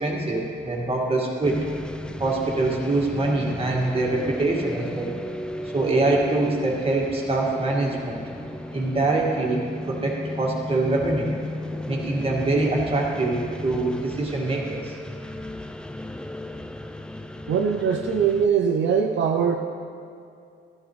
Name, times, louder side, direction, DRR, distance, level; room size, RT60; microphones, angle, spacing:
voice 1, 0.0-1.7 2.2-5.1 5.6-8.2 8.7-11.4 11.9-15.0, right 2 dB, 30° right, -2 dB, 2.1 m, -24 dB
sound 1, 1.4-18.5, left 1 dB, 5° left, 0.4 m, -35 dB
voice 2, 17.5-19.6, right 7 dB, 65° right, 3 dB, 0.7 m, -21 dB
13.0 x 11.5 x 3.2 m, 2.4 s
cardioid pair, 90°, 20 cm